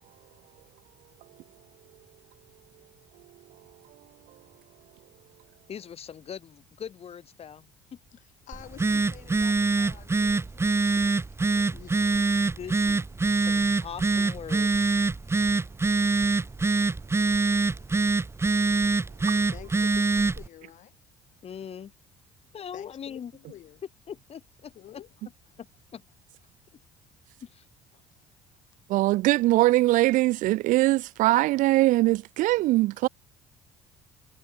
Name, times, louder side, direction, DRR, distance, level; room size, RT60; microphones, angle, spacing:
voice 1, 5.7-7.7 11.7-11.9 12.6-15.0 21.4-21.9 22.5-23.3 24.1-24.7 25.6-25.7 25.9-26.0 27.4-27.6, left 8 dB, 45° left, 2.8 m, -41 dB
voice 2, 8.2-12.3 19.5-20.9 22.7-23.8 24.7-25.1 27.9-28.1, left 12 dB, 60° left, 4.8 m, -50 dB
Telephone, 8.5-20.5, right 3 dB, 20° right, 1.0 m, -25 dB
voice 3, 28.9-33.1, right 18 dB, 65° right, 0.7 m, -22 dB
supercardioid pair, 70°, 14 cm